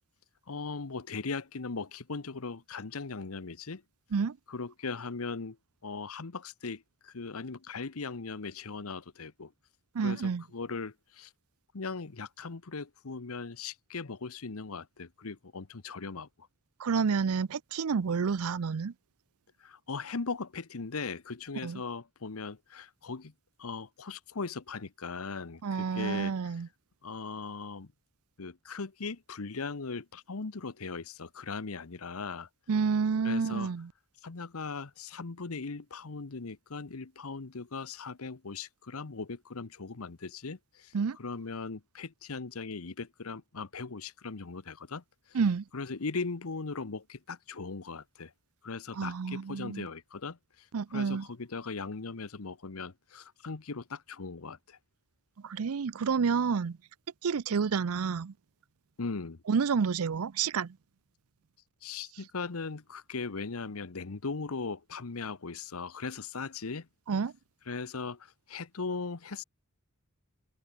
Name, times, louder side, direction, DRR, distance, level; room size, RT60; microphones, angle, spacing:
voice 1, 0.5-3.8 4.5-5.6 5.8-9.5 10.0-11.3 11.7-16.5 19.6-23.3 23.6-26.3 27.0-27.9 28.4-32.5 33.2-33.7 34.2-40.9 41.2-45.4 45.7-48.3 48.6-50.7 50.9-54.8 59.0-59.4 61.8-66.9 67.7-69.4, left 4 dB, 75° left, 1.0 m, -39 dB
voice 2, 9.9-10.4 16.8-18.9 21.6-21.8 25.6-26.7 32.7-33.9 40.9-41.2 45.3-45.6 48.9-49.9 50.7-51.3 55.4-56.8 57.2-58.3 59.5-60.8 67.1-67.3, right 5 dB, 75° right, 0.5 m, -29 dB
open air
head